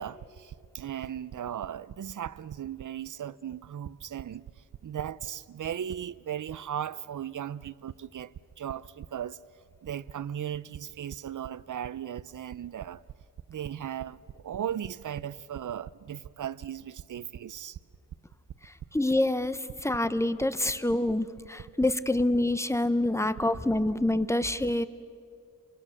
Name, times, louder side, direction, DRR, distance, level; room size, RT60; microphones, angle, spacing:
voice 1, 0.0-4.4 4.8-9.4 9.8-13.0 13.5-17.8, right 9 dB, 60° right, 0.6 m, -37 dB
voice 2, 18.6-24.8, left 1 dB, 10° left, 0.8 m, -27 dB
27.5 x 23.5 x 6.5 m
wide cardioid pair, 90°, 34 cm